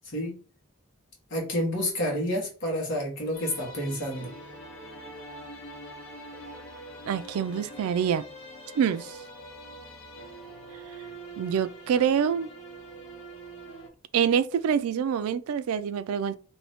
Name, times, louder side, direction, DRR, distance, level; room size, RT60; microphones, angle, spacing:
voice 1, 1.3-4.3, equal, 60° left, 1.2 m, -29 dB
sound 1, 3.3-13.9, right 1 dB, 80° left, 0.9 m, -44 dB
voice 2, 7.1-8.2 8.8-9.2 11.4-12.5 14.1-16.4, right 8 dB, 75° right, 0.3 m, -26 dB
2.6 x 2.6 x 3.4 m
head